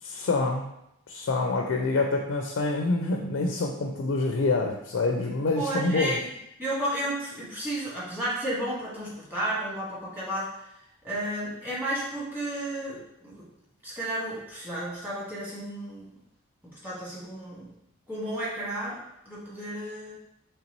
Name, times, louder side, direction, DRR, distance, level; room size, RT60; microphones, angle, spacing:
voice 1, 0.0-0.7 1.1-6.2, left 3 dB, 65° left, 1 dB, 0.4 m, -26 dB
voice 2, 5.6-6.3 6.6-10.5 11.0-13.5 13.8-16.1 16.8-17.7 18.1-20.2, right 1 dB, 10° right, -8 dB, 1.3 m, -32 dB
3.9 x 3.4 x 3.0 m, 0.80 s
head